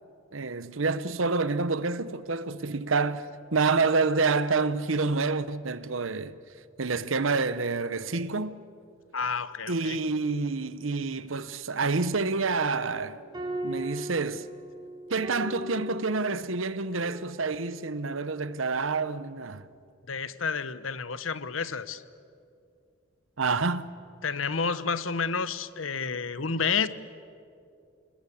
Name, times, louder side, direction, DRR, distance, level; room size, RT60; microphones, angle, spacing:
voice 1, 0.3-6.3 6.8-8.6 9.7-13.2 13.6-14.5 15.1-19.7 23.4-23.9, right 4 dB, 85° right, 1.0 m, -28 dB
voice 2, 9.1-10.0 20.1-22.0 24.2-26.9, left 5 dB, 85° left, 1.0 m, -30 dB
sound 1, 13.1-18.2, equal, 20° right, 3.6 m, -39 dB
28.5 x 21.0 x 8.6 m
head